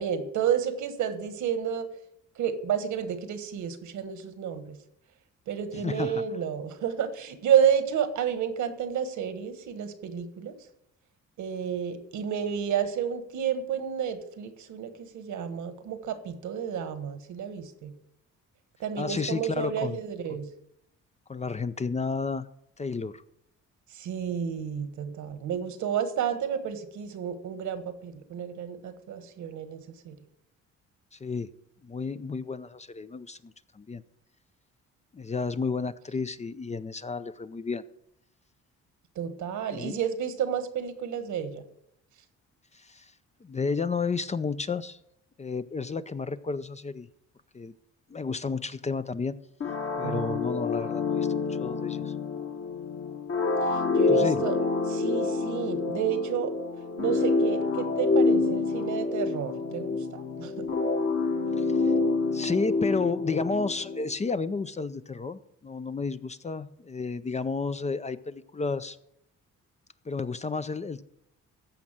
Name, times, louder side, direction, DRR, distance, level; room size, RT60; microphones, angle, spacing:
voice 1, 0.0-1.9 2.4-4.8 5.5-10.5 11.4-18.0 18.8-20.5 23.9-30.2 39.1-41.6 50.0-50.4 53.7-54.6 54.9-56.5 57.0-60.7, right 8 dB, 75° right, 10 dB, 1.4 m, -30 dB
voice 2, 5.7-6.2 19.0-20.0 21.3-22.5 22.8-23.2 31.1-31.5 31.8-34.0 35.1-37.8 39.7-40.0 42.7-43.1 43.4-45.0 45.4-47.1 47.5-47.7 48.1-49.4 50.0-52.1 54.1-54.5 61.6-61.9 62.3-69.0 70.1-71.0, left 4 dB, 25° left, 13 dB, 0.5 m, -32 dB
sound 1, 49.6-64.2, left 3 dB, 45° left, 1.6 m, -27 dB
14.5 x 5.4 x 7.4 m, 0.77 s
cardioid pair, 90°, 30 cm